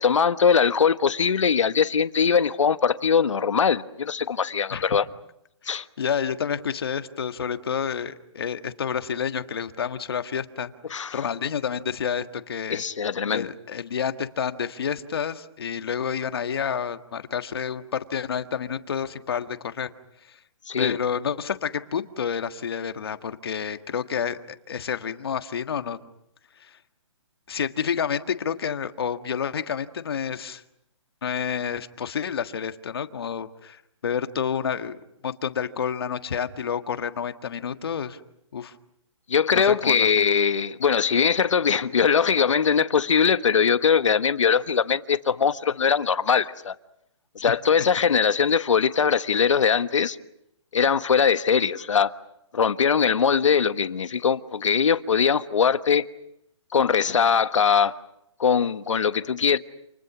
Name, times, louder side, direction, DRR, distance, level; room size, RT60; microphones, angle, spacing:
voice 1, 0.0-5.0 5.7-5.8 10.9-11.2 12.7-13.5 20.7-21.0 39.3-46.7 47.3-50.2 50.7-52.1 52.5-56.0 56.7-58.0 58.4-59.6, left 6 dB, 75° left, 1.4 m, -21 dB
voice 2, 6.0-12.8 13.3-19.9 20.3-20.4 20.8-26.0 26.6-26.7 27.5-30.6 31.2-35.0 35.2-38.2 38.5-38.7 39.5-40.3, left 7 dB, 50° left, 1.6 m, -29 dB
29.0 x 28.5 x 6.1 m
hypercardioid pair, 175°, 16 cm